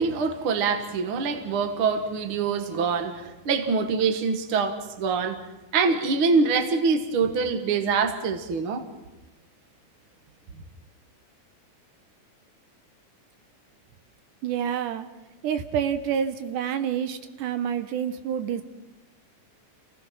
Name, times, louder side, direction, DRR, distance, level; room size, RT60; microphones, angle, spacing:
voice 1, 0.0-5.4 5.7-8.8, right 5 dB, 50° right, 2.1 m, -25 dB
voice 2, 14.4-15.1 15.4-18.6, right 8 dB, 80° right, 2.4 m, -28 dB
28.0 x 17.5 x 5.9 m
omnidirectional pair, 3.6 m